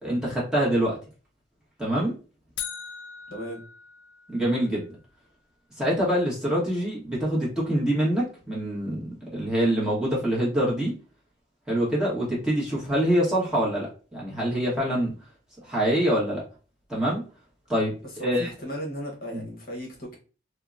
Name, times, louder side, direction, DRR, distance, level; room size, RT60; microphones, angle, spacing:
voice 1, 0.0-1.0 1.8-2.1 4.3-4.8 5.8-10.9 11.7-15.1 15.7-16.4 16.9-17.2 17.7-17.9 18.2-18.5 19.3-19.4, equal, 5° right, -7 dB, 1.1 m, -25 dB
sound 1, 2.6-4.7, left 8 dB, 65° left, 0.4 m, -39 dB
voice 2, 3.3-3.6 18.0-20.2, equal, 50° left, -1 dB, 0.9 m, -36 dB
3.6 x 2.2 x 2.4 m, 0.36 s
head